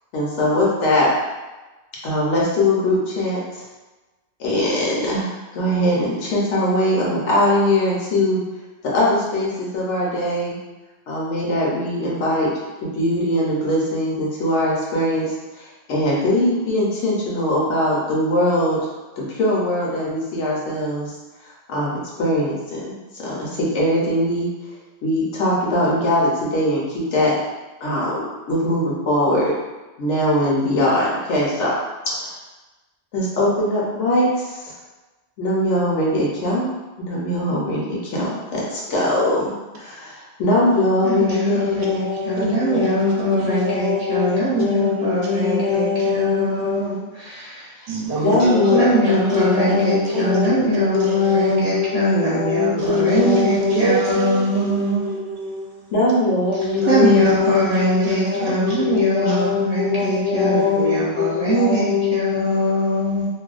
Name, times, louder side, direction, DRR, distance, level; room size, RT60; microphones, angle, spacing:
voice 1, 0.1-1.1 2.0-3.6 4.4-8.4 8.8-10.6 11.1-12.5 12.8-15.3 15.5-18.8 19.2-21.1 21.7-24.5 25.0-27.3 27.8-29.5 30.0-31.7 32.2-32.3 33.1-34.6 35.4-36.7 37.0-47.0 48.2-54.2 55.9-62.4, left 2 dB, 75° left, -5 dB, 1.0 m, -21 dB
voice 2, 41.0-47.7 48.7-55.0 56.9-63.3, right 1 dB, 45° right, -9 dB, 0.6 m, -22 dB
voice 3, 47.9-48.8 49.0-49.5 49.8-50.5 51.0-51.5 52.8-55.9 56.8-57.3 58.0-58.8 59.2-59.4 60.0-60.2, right 3 dB, 70° right, -3 dB, 0.9 m, -27 dB
2.6 x 2.1 x 2.4 m, 1.1 s
omnidirectional pair, 1.2 m